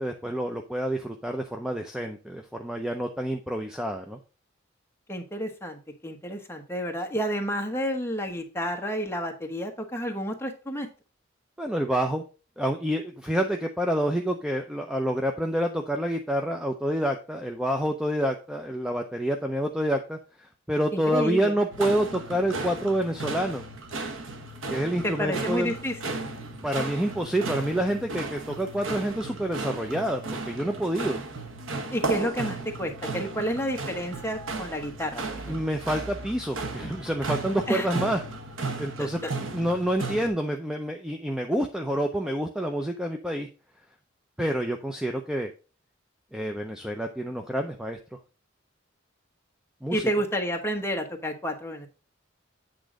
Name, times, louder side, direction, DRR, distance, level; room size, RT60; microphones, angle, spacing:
voice 1, 0.0-4.2 11.6-12.2 12.6-23.6 24.7-25.7 26.6-30.2 30.5-31.2 35.5-38.2 38.8-39.2 39.5-43.5 44.4-45.5 46.3-48.0 49.8-50.0, right 1 dB, 5° right, 4 dB, 0.5 m, -28 dB
voice 2, 5.1-10.9 20.9-21.5 25.0-26.0 31.9-35.6 37.7-37.9 39.0-39.3 49.9-51.9, equal, 10° left, 3 dB, 1.1 m, -30 dB
sound 1, 21.7-40.3, right 3 dB, 75° right, 1.0 m, -35 dB
8.3 x 3.8 x 5.0 m, 0.34 s
head